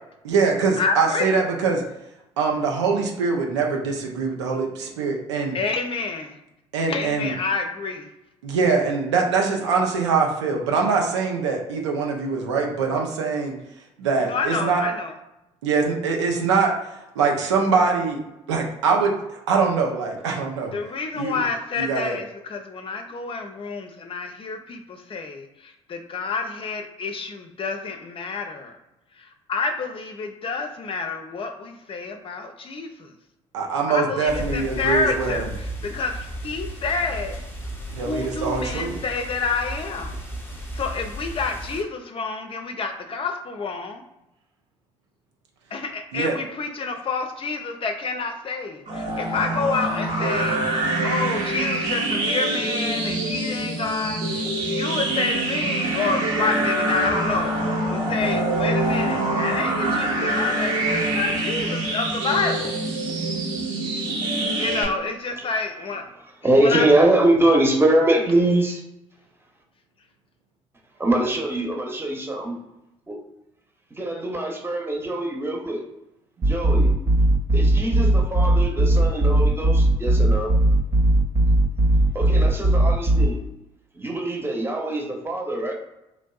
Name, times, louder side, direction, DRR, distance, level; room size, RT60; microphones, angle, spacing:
voice 1, 0.2-1.8 2.4-5.6 6.7-7.3 8.4-13.5 14.0-14.8 15.6-16.8 17.2-18.2 18.5-19.1 19.5-20.7 21.1-21.4 21.8-22.2 33.5-35.5 37.9-39.0 46.1-46.4, right 5 dB, 90° right, 1 dB, 0.5 m, -23 dB
voice 2, 0.8-1.4 5.5-6.4 6.9-8.1 14.2-15.1 20.7-28.7 29.2-33.1 33.9-37.4 38.0-40.2 40.7-44.0 45.7-57.6 57.9-62.8 64.5-66.0 66.6-66.9, left 4 dB, 40° left, 5 dB, 0.5 m, -28 dB
sound 1, 34.3-41.8, equal, 15° left, 0.8 m, -34 dB
sound 2, 48.9-64.9, right 2 dB, 60° right, 0.9 m, -25 dB
voice 3, 66.4-68.8 71.0-72.5 73.1-73.2 73.9-75.8 76.4-76.9 77.5-80.5 82.1-83.4 84.0-85.7, right 1 dB, 15° right, 0 dB, 0.8 m, -22 dB
sound 3, 76.4-83.3, right 1 dB, 35° right, 0.4 m, -19 dB
3.1 x 2.5 x 2.3 m, 0.90 s
hypercardioid pair, 50°, 14 cm